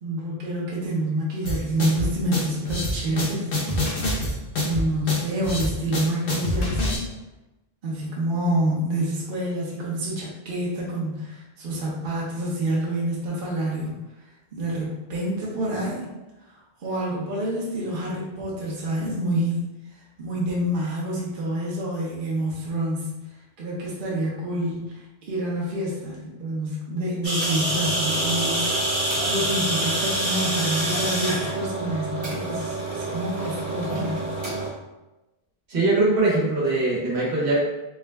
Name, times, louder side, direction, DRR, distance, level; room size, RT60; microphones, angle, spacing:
voice 1, 0.0-3.5 4.6-7.0 7.8-13.9 14.5-16.1 16.8-19.6 20.2-23.2 23.6-34.3, right 1 dB, 55° right, -5 dB, 0.9 m, -28 dB
sound 1, 1.4-7.0, left 1 dB, 60° left, 0.9 m, -26 dB
sound 2, 27.2-34.7, right 1 dB, 30° right, 0.9 m, -26 dB
voice 2, 35.7-37.6, right 2 dB, 85° right, -5 dB, 1.3 m, -21 dB
3.6 x 2.1 x 3.3 m, 1.0 s
omnidirectional pair, 1.1 m